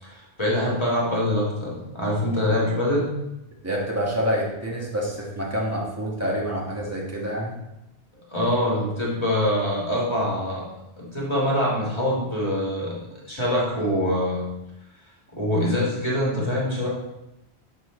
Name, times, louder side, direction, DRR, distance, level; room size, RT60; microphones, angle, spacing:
voice 1, 0.0-3.1 8.3-10.7 11.0-14.5 15.3-16.9, left 1 dB, 25° left, -5 dB, 1.8 m, -24 dB
voice 2, 3.6-7.6, equal, 15° right, -3 dB, 1.3 m, -27 dB
6.6 x 4.4 x 4.3 m, 0.91 s
omnidirectional pair, 1.1 m